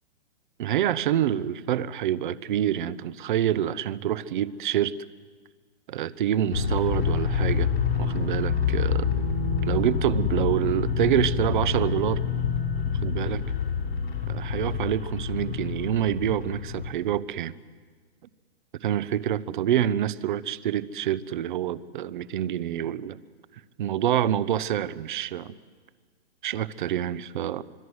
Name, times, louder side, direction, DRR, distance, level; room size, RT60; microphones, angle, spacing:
voice 1, 0.6-4.9 5.9-7.7 8.0-9.1 9.6-12.2 13.0-13.4 14.3-17.5 18.8-23.2 23.8-25.5 26.4-27.6, right 11 dB, 50° right, 17 dB, 0.9 m, -27 dB
sound 1, 6.5-16.9, left 6 dB, 80° left, 5.6 m, -27 dB
26.0 x 22.5 x 8.0 m, 1.5 s
hypercardioid pair, 155°, 31 cm